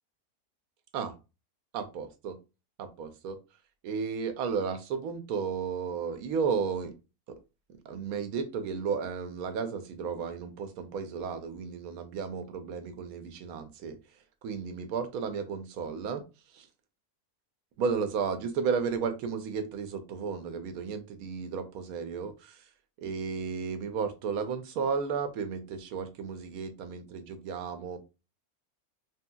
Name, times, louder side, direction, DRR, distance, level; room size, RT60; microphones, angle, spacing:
voice 1, 1.7-2.4 2.8-3.4 3.8-6.9 7.9-14.0 14.4-16.2 16.5-16.7 17.8-22.6 23.0-28.0, right 6 dB, 75° right, 8 dB, 1.0 m, -33 dB
3.0 x 2.7 x 2.2 m, 0.29 s
omnidirectional pair, 1.6 m